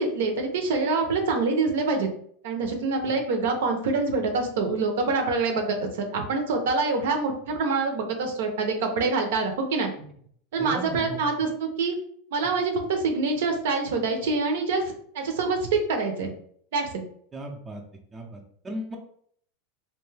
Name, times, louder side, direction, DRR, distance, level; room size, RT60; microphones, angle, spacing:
voice 1, 0.0-2.1 2.4-9.9 10.5-11.5 11.8-12.0 12.3-16.3 16.7-17.0, right 3 dB, 75° right, 4 dB, 0.6 m, -25 dB
voice 2, 10.6-11.2 17.3-17.8 18.1-19.0, right 1 dB, 15° right, 0 dB, 0.5 m, -36 dB
2.6 x 2.2 x 3.2 m, 0.63 s
supercardioid pair, 140°, 0 cm